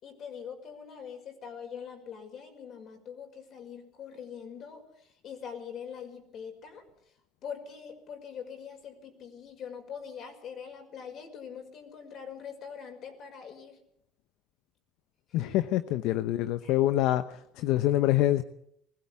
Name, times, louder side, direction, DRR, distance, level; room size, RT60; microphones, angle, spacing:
voice 1, 0.0-6.8 7.4-13.8 15.3-15.5 16.6-16.8 17.6-17.7, left 7 dB, 55° left, 6.0 m, -43 dB
voice 2, 15.3-17.2 17.6-18.4, left 14 dB, 75° left, 0.8 m, -25 dB
20.5 x 16.0 x 8.5 m
supercardioid pair, 100°, 0 cm